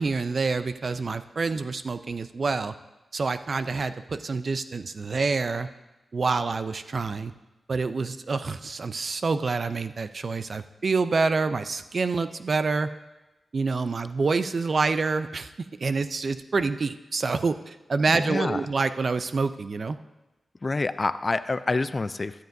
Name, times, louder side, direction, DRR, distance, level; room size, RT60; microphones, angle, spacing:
voice 1, 0.0-2.7 3.1-5.7 6.1-7.3 7.7-12.9 13.5-15.5 15.8-20.0, right 4 dB, 60° right, 11 dB, 0.5 m, -27 dB
voice 2, 18.1-18.6 20.6-22.4, left 3 dB, 45° left, 14 dB, 0.4 m, -27 dB
13.0 x 13.0 x 2.7 m, 1.0 s
cardioid pair, 45°, 0 cm